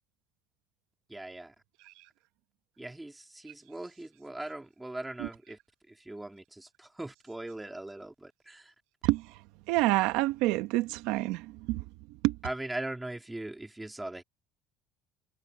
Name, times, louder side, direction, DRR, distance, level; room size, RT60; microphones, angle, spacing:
voice 1, 1.1-1.5 2.8-5.6 5.9-8.7 12.4-14.2, right 2 dB, 5° right, 2.1 m, -40 dB
voice 2, 9.0-9.4 9.7-11.8 12.2-12.4, right 18 dB, 75° right, 1.0 m, -28 dB
cardioid pair, 145°, 0 cm